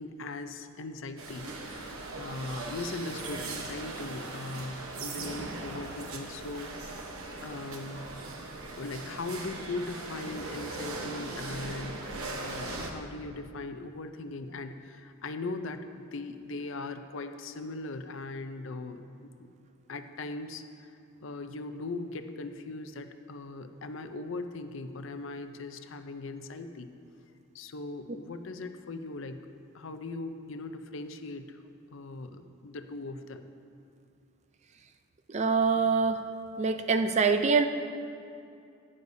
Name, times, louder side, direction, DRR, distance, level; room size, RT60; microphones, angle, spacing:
voice 1, 0.0-7.1 7.4-8.1 8.8-12.0 12.4-19.5 19.9-26.9 27.5-29.4 29.7-31.6 31.9-33.5, left 3 dB, 60° left, 8 dB, 0.5 m, -39 dB
sound 1, 1.2-12.9, right 2 dB, 85° right, 1.0 m, -39 dB
voice 2, 35.3-36.2 36.6-37.7, right 5 dB, 30° right, 8 dB, 0.4 m, -24 dB
14.5 x 9.7 x 2.7 m, 2.5 s
head